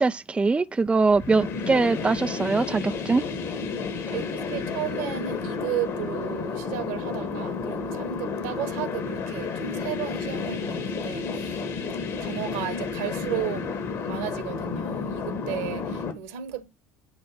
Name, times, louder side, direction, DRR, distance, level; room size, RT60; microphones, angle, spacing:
voice 1, 0.0-3.2, right 3 dB, 15° right, 0.4 m, -22 dB
sound 1, 1.1-16.1, left 5 dB, 55° left, 2.1 m, -31 dB
voice 2, 4.1-11.6 12.2-13.6 13.9-16.7, right 11 dB, 65° right, 1.4 m, -34 dB
9.7 x 3.4 x 6.4 m
figure-of-eight pair, 60°, 7 cm